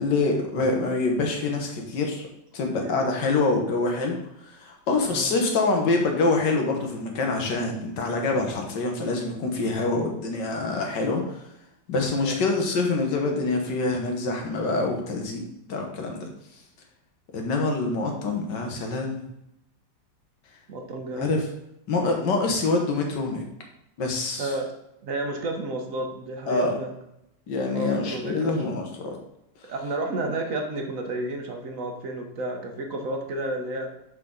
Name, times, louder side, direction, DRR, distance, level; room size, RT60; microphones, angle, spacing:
voice 1, 0.0-2.2 2.5-11.4 11.9-15.4 15.7-16.3 17.3-19.2 21.1-21.5 21.9-23.4 24.0-24.5 26.5-26.8 27.5-29.2, left 3 dB, 75° left, 2 dB, 1.8 m, -25 dB
voice 2, 2.8-3.1 5.0-5.3 12.1-12.4 20.7-21.4 24.4-24.6 25.0-26.9 27.7-28.7 29.7-33.9, right 2 dB, 50° right, 3 dB, 1.3 m, -31 dB
6.4 x 6.0 x 3.9 m, 0.82 s
omnidirectional pair, 1.9 m